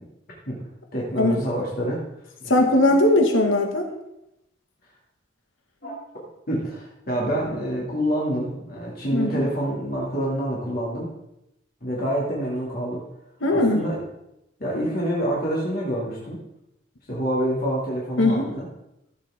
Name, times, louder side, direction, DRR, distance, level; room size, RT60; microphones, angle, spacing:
voice 1, 0.9-2.0 2.4-2.5 5.8-5.9 6.5-11.1 11.8-13.0 13.5-14.0 14.6-16.4 17.1-18.7, equal, 50° left, -5 dB, 2.6 m, -27 dB
voice 2, 2.5-3.9 9.1-9.3 13.4-13.8 18.2-18.5, left 1 dB, 80° left, 3 dB, 1.9 m, -19 dB
15.5 x 7.7 x 3.7 m, 0.87 s
head